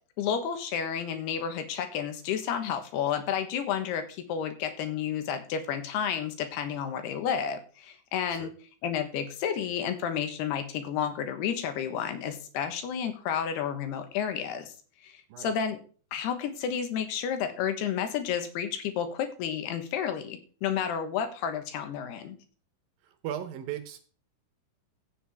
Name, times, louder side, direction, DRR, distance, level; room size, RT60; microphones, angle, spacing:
voice 1, 0.2-8.5 8.8-14.7 15.0-15.8 16.1-22.4, left 8 dB, 80° left, 8 dB, 3.2 m, -31 dB
voice 2, 23.0-24.0, right 10 dB, 70° right, 9 dB, 2.5 m, -37 dB
15.5 x 7.2 x 3.5 m, 0.40 s
omnidirectional pair, 4.6 m